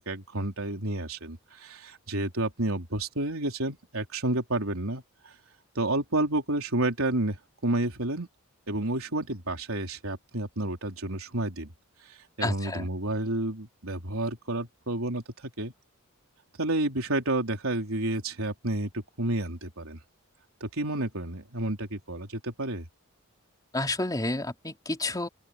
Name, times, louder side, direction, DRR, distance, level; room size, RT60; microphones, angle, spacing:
voice 1, 0.0-5.0 5.8-8.3 8.7-11.7 12.1-15.7 16.6-20.0 20.6-22.9, right 2 dB, 80° right, 3.9 m, -30 dB
voice 2, 12.4-12.9 23.7-25.3, left 2 dB, 20° left, 3.3 m, -30 dB
open air
head